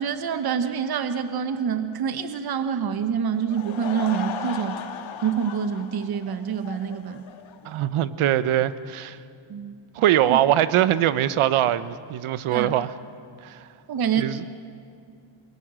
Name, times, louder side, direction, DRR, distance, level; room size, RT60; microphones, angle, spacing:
voice 1, 0.0-4.8 5.2-7.3 9.5-9.8 10.2-10.4 12.5-12.7 13.9-14.2, right 7 dB, 50° right, 10 dB, 1.2 m, -26 dB
Laughter / Crowd, 3.3-7.9, left 7 dB, 70° left, 1.8 m, -37 dB
voice 2, 7.6-9.2 9.9-12.9 13.4-13.6 14.2-14.4, right 12 dB, 80° right, 15 dB, 1.0 m, -22 dB
27.0 x 23.0 x 7.6 m, 2.4 s
cardioid pair, 115°, 49 cm